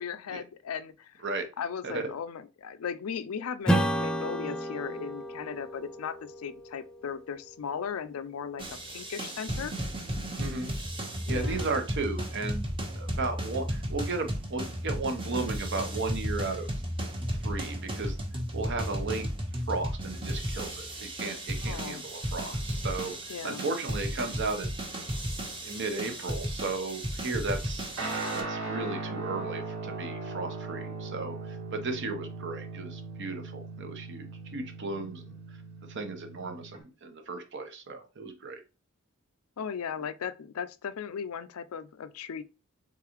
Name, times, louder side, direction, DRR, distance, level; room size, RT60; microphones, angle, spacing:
voice 1, 0.0-1.2 1.6-9.7 11.3-11.7 21.6-22.0 23.3-23.6 39.6-42.4, left 7 dB, 90° left, 0.4 m, -37 dB
Strum, 3.7-8.6, right 1 dB, 5° left, 0.3 m, -32 dB
sound 1, 8.6-28.4, equal, 25° right, 1.0 m, -34 dB
voice 2, 10.4-10.7 11.3-12.7 12.9-16.8 17.3-18.2 18.5-19.3 19.7-24.8 25.6-35.6 35.9-38.6, right 3 dB, 55° right, 0.9 m, -35 dB
Guitar, 28.0-36.8, right 3 dB, 75° right, 1.5 m, -38 dB
3.8 x 3.7 x 3.0 m
head